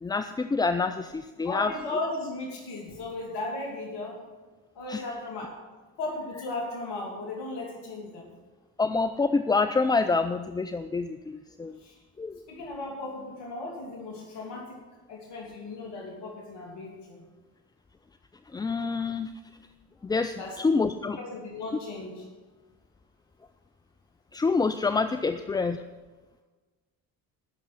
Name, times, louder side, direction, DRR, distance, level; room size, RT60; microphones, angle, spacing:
voice 1, 0.0-1.7 4.9-5.0 8.8-11.8 12.2-12.4 18.5-19.3 20.0-21.2 24.3-25.8, left 4 dB, 10° left, 9 dB, 0.3 m, -27 dB
voice 2, 1.4-4.2 4.7-5.6 6.0-8.3 11.8-12.0 12.5-14.8 15.1-17.2 20.4-22.3, left 2 dB, 60° left, 0 dB, 2.9 m, -36 dB
16.5 x 6.6 x 6.0 m, 1.3 s
hypercardioid pair, 55°, 45 cm